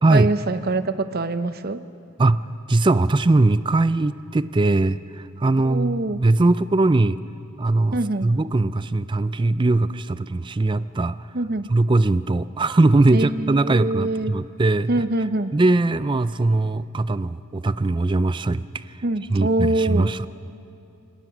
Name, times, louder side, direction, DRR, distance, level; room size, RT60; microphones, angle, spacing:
voice 1, 0.1-1.8 5.6-6.2 7.9-8.3 11.3-11.7 13.1-14.3 14.9-15.5 19.0-20.1, right 2 dB, 45° right, 12 dB, 0.8 m, -24 dB
voice 2, 2.2-7.2 7.6-11.2 11.7-14.9 15.5-18.7 19.3-20.3, right 2 dB, 20° right, 15 dB, 0.4 m, -20 dB
28.0 x 18.5 x 6.1 m, 2.7 s
head